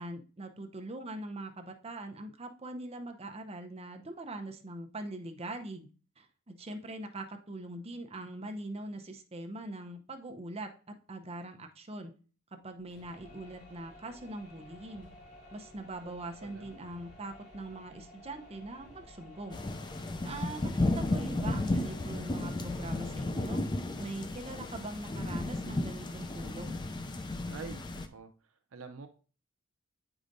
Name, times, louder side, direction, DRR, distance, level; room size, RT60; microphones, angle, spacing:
voice 1, 0.0-5.9 6.2-10.7 11.1-12.1 12.5-15.1 15.5-19.6 20.2-23.6 24.0-26.7, right 2 dB, 30° right, 5 dB, 0.7 m, -42 dB
sound 1, 12.8-24.7, left 1 dB, 45° left, 3.8 m, -55 dB
voice 2, 16.0-16.7 27.5-29.1, right 4 dB, 75° right, 5 dB, 0.6 m, -47 dB
sound 2, 19.5-28.1, left 2 dB, 20° left, 0.4 m, -34 dB
8.6 x 4.9 x 2.6 m, 0.37 s
head